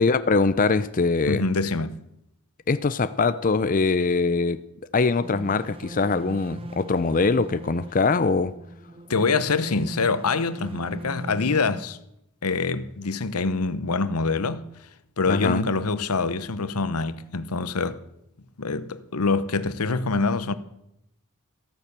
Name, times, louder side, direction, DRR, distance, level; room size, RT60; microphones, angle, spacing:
voice 1, 0.0-1.4 2.7-4.6 4.9-8.5 15.3-15.7, left 4 dB, 40° left, 0.5 m, -22 dB
voice 2, 1.3-1.9 9.1-12.0 12.4-14.6 15.2-18.0 18.6-20.5, left 4 dB, 90° left, 0.9 m, -25 dB
sound 1, 5.2-11.8, right 1 dB, 25° right, 0.5 m, -40 dB
15.0 x 13.5 x 6.9 m
head